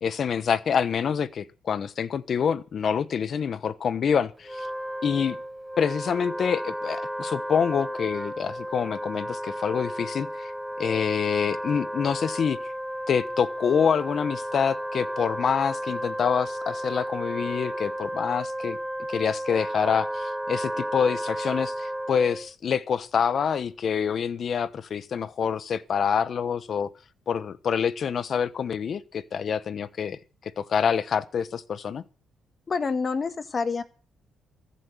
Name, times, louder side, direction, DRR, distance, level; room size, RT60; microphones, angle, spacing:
voice 1, 0.0-4.7 5.0-5.4 5.8-10.5 10.8-12.6 13.1-18.8 19.1-26.9 27.3-32.0, left 7 dB, 55° left, 1.1 m, -26 dB
Wind instrument woodwind instrument, 4.4-22.5, equal, 5° right, 0.8 m, -33 dB
voice 2, 32.7-33.8, left 4 dB, 35° left, 1.7 m, -27 dB
14.5 x 8.5 x 7.8 m
cardioid pair, 90°, 0 cm